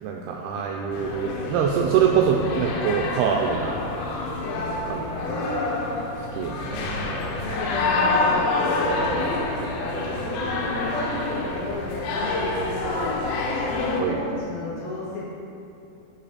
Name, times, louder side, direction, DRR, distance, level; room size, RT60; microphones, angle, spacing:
voice 1, 0.0-3.8 4.9-5.5 6.3-7.1 14.0-14.2, right 7 dB, 85° right, 0 dB, 2.2 m, -24 dB
sound 1, 0.9-14.0, left 2 dB, 85° left, 3.1 m, -27 dB
voice 2, 4.4-5.4 7.2-12.3 12.6-15.2, left 1 dB, 60° left, -8 dB, 2.3 m, -32 dB
9.9 x 5.2 x 4.2 m, 2.7 s
omnidirectional pair, 5.1 m